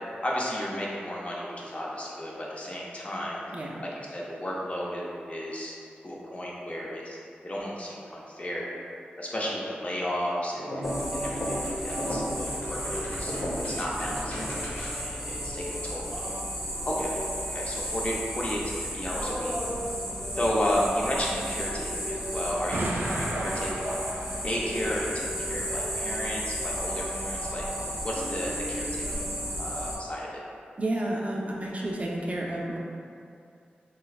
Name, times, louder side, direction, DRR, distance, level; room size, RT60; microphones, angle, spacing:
voice 1, 0.2-3.4 3.8-5.7 6.0-8.7 9.2-13.3 13.7-16.4 16.8-17.2 17.5-19.5 20.3-24.0 24.4-27.6 28.0-29.3 29.6-30.4, equal, 35° left, -4 dB, 0.7 m, -33 dB
sound 1, 10.6-15.2, equal, 65° left, 0.9 m, -35 dB
sound 2, 10.8-30.0, equal, ahead, 0.7 m, -33 dB
Explosion, 22.7-24.9, right 2 dB, 90° right, 0.3 m, -34 dB
voice 2, 30.8-32.8, right 1 dB, 40° right, -2 dB, 0.6 m, -31 dB
3.1 x 3.0 x 2.4 m, 2.5 s
cardioid pair, 45°, 4 cm